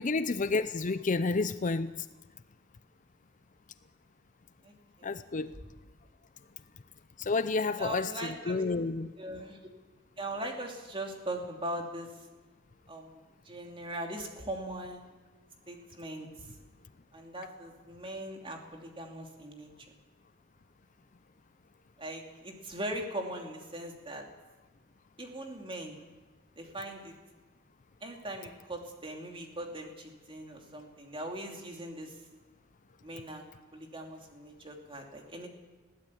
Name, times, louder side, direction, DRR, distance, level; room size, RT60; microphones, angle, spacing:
voice 1, 0.0-2.1 5.0-5.6 7.2-9.1, left 3 dB, 40° left, 13 dB, 0.6 m, -30 dB
voice 2, 4.6-5.2 7.8-8.6 9.2-9.7 10.2-12.2 12.9-13.2 13.4-15.1 15.7-16.6 17.1-19.7 22.0-24.3 25.2-26.0 26.6-27.1 28.0-32.2 33.0-33.4 33.7-35.5, right 1 dB, 25° right, 2 dB, 2.9 m, -40 dB
21.0 x 16.5 x 8.6 m, 1.2 s
head